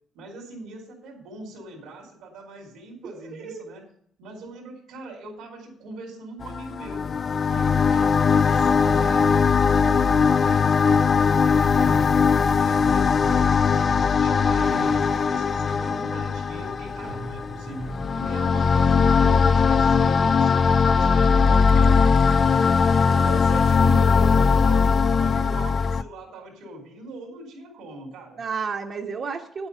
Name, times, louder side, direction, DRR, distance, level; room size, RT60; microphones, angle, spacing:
voice 1, 0.1-3.8 4.2-7.0 7.4-22.7 23.0-28.4, right 2 dB, 90° right, -5 dB, 3.3 m, -41 dB
voice 2, 3.0-3.7 28.4-29.7, right 5 dB, 55° right, -1 dB, 1.2 m, -32 dB
sound 1, 6.4-26.0, left 5 dB, 45° left, 0.4 m, -20 dB
sound 2, 8.5-18.4, right 3 dB, 40° right, 0.8 m, -40 dB
9.8 x 7.9 x 5.5 m, 0.65 s
cardioid pair, 90°, 0 cm